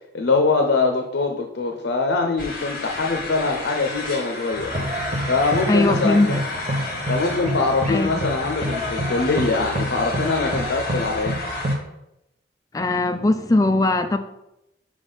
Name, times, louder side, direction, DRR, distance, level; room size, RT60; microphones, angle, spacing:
voice 1, 0.1-4.7 5.3-6.4 7.1-11.4, left 3 dB, 80° left, 3 dB, 0.6 m, -23 dB
sound 1, 2.4-11.8, left 3 dB, 50° left, 1.1 m, -32 dB
sound 2, 4.5-11.8, equal, 40° right, 0.8 m, -28 dB
voice 2, 5.7-6.4 7.9-8.3 12.7-14.2, left 2 dB, 20° left, 7 dB, 0.3 m, -20 dB
5.0 x 3.6 x 5.5 m, 0.88 s
head